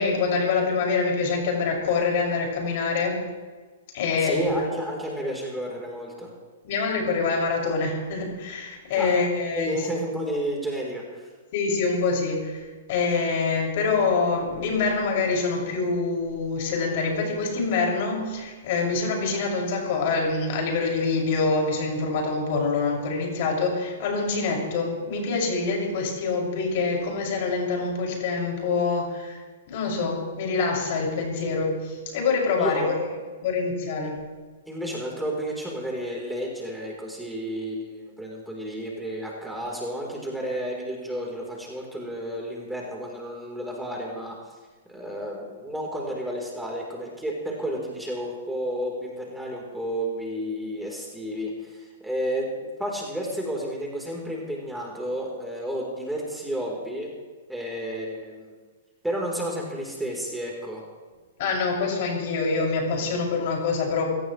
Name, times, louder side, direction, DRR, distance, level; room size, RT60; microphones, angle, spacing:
voice 1, 0.0-3.2 3.9-4.7 6.6-9.9 11.5-29.4 29.7-34.2 61.4-64.1, left 4 dB, 55° left, 0 dB, 6.5 m, -25 dB
voice 2, 4.2-6.3 9.0-9.1 9.5-11.3 32.6-32.9 34.7-44.3 44.9-57.1 57.5-58.5 59.0-60.8, equal, 5° right, -2 dB, 4.1 m, -31 dB
24.0 x 17.0 x 3.3 m, 1.4 s
hypercardioid pair, 115°, 0 cm